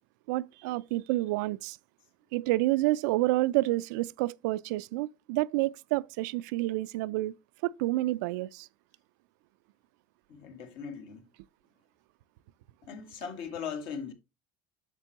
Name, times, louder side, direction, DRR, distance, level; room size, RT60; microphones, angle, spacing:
voice 1, 0.3-1.8 2.3-7.3 7.6-8.7, right 18 dB, 80° right, 0.4 m, -29 dB
voice 2, 10.3-11.3 12.8-14.1, left 6 dB, 65° left, 1.9 m, -39 dB
8.1 x 6.7 x 2.8 m
supercardioid pair, 120°, 9 cm